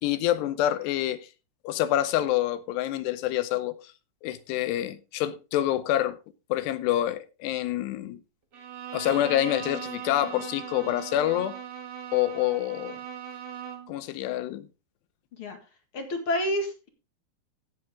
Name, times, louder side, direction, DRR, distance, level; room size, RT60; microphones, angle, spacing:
voice 1, 0.0-1.3 1.6-3.8 4.2-6.2 6.5-8.2 8.9-11.5 12.1-13.0 13.9-14.7, left 13 dB, 85° left, 3.0 m, -27 dB
Bowed string instrument, 8.5-14.0, right 8 dB, 70° right, 1.0 m, -39 dB
voice 2, 15.9-16.9, left 1 dB, 45° left, 1.9 m, -29 dB
15.5 x 7.6 x 3.6 m
omnidirectional pair, 4.7 m